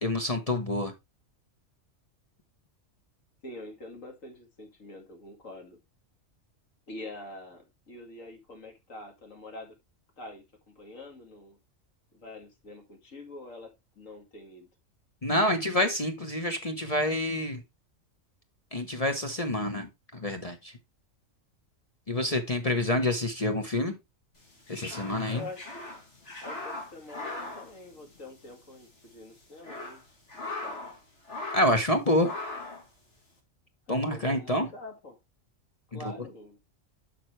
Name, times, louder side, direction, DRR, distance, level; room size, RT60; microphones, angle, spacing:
voice 1, 0.0-0.9 15.2-17.6 18.7-20.8 22.1-24.0 24.7-25.4 31.5-32.3 33.9-34.7 35.9-36.0, left 1 dB, 30° left, 1.0 m, -27 dB
voice 2, 3.4-5.8 6.9-9.8 10.2-11.6 12.1-14.7 22.3-22.8 25.3-25.6 26.4-30.0 30.3-30.9 33.9-35.2 35.9-36.6, left 2 dB, 80° left, 2.5 m, -45 dB
sound 1, 24.4-28.5 28.8-28.9 29.4-31.0 31.3-31.9 32.2-32.9, left 2 dB, 60° left, 2.8 m, -39 dB
9.0 x 6.0 x 3.2 m
omnidirectional pair, 1.3 m